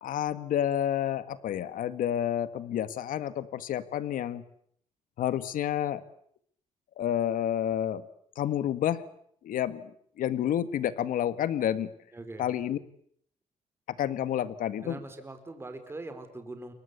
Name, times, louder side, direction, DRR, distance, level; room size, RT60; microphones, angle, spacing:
voice 1, 0.0-4.4 5.2-6.0 7.0-8.0 8.4-9.0 9.4-9.9 10.2-11.9 12.4-12.8 14.0-15.0, left 10 dB, 90° left, 13 dB, 1.8 m, -29 dB
voice 2, 12.1-12.5 14.8-16.7, right 2 dB, 15° right, 8 dB, 4.7 m, -42 dB
29.5 x 23.5 x 8.3 m, 0.67 s
cardioid pair, 155°, 14 cm